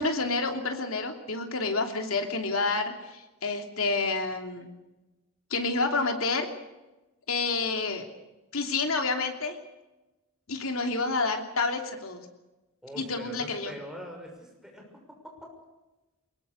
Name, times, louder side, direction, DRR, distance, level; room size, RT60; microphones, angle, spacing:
voice 1, 0.0-4.7 5.5-6.5 7.3-8.1 8.5-9.6 10.5-12.2 12.9-13.7, left 3 dB, 70° left, 4 dB, 3.1 m, -29 dB
voice 2, 12.8-14.8 15.2-15.5, equal, 5° right, 0 dB, 6.4 m, -43 dB
23.5 x 21.0 x 6.6 m, 1.1 s
head